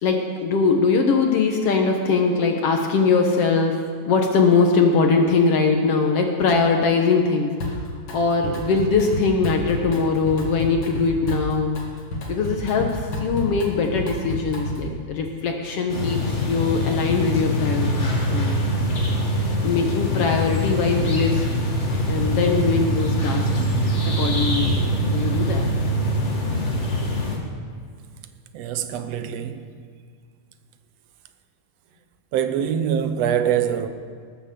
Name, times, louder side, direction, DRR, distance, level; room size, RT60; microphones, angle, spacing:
voice 1, 0.0-3.8 4.1-11.8 12.3-18.6 19.6-21.7 22.1-23.7 24.1-25.7, left 4 dB, 60° left, 1.8 m, -21 dB
Drum kit, 7.6-8.2 8.4-15.0, left 1 dB, 45° left, 2.3 m, -30 dB
sound 1, 15.9-27.4, equal, 30° left, 1.7 m, -23 dB
voice 2, 28.5-29.7 32.3-33.9, right 9 dB, 70° right, 1.7 m, -24 dB
19.0 x 7.5 x 7.0 m
omnidirectional pair, 3.4 m